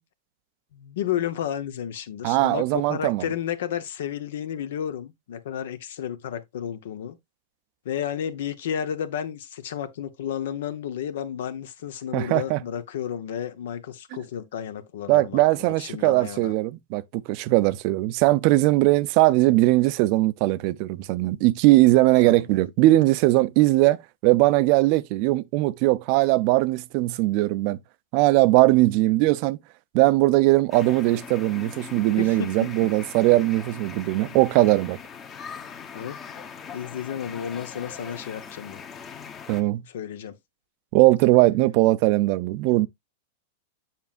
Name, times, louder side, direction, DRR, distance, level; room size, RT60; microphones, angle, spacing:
voice 1, 0.7-7.2 7.8-16.5 22.2-22.5 32.2-32.7 35.9-36.2 36.7-38.8 39.9-40.4, left 9 dB, 75° left, 1.0 m, -32 dB
voice 2, 2.2-3.2 12.1-12.6 15.1-27.8 28.1-29.6 29.9-35.0 39.5-39.8 40.9-42.9, right 18 dB, 50° right, 0.4 m, -20 dB
sound 1, 30.7-39.6, left 6 dB, 25° left, 1.1 m, -41 dB
7.1 x 5.9 x 2.5 m
hypercardioid pair, 125°, 0 cm